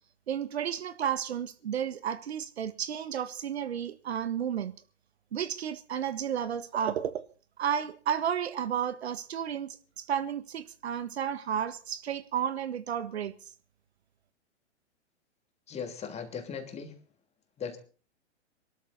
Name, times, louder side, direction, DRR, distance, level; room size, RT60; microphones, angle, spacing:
voice 1, 0.3-4.7 5.3-7.2 7.6-13.3, right 9 dB, 65° right, 1.5 m, -32 dB
voice 2, 15.7-17.0 17.6-17.8, left 6 dB, 20° left, 2.9 m, -38 dB
23.0 x 13.0 x 4.1 m
figure-of-eight pair, 115°, 35 cm